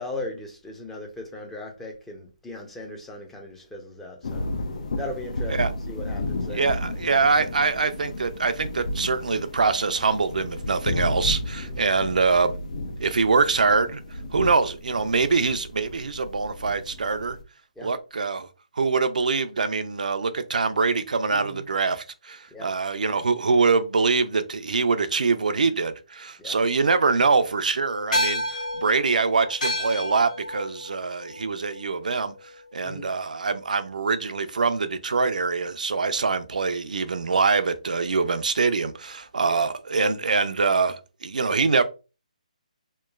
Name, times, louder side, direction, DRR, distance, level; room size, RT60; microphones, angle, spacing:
voice 1, 0.0-4.4 5.0-6.6 11.6-11.9 17.8-17.9 21.3-21.6 22.5-22.7 26.4-26.6 32.8-33.1 39.4-39.7, left 2 dB, 5° left, 0.5 m, -38 dB
sound 1, 4.2-17.4, left 2 dB, 65° left, 0.5 m, -33 dB
voice 2, 6.5-12.6 13.0-14.0 14.3-17.4 17.8-18.5 18.8-32.3 32.7-41.8, right 4 dB, 80° right, 0.4 m, -24 dB
sound 2, 28.1-32.8, left 1 dB, 80° left, 1.0 m, -31 dB
3.0 x 2.1 x 2.3 m
hypercardioid pair, 155°, 4 cm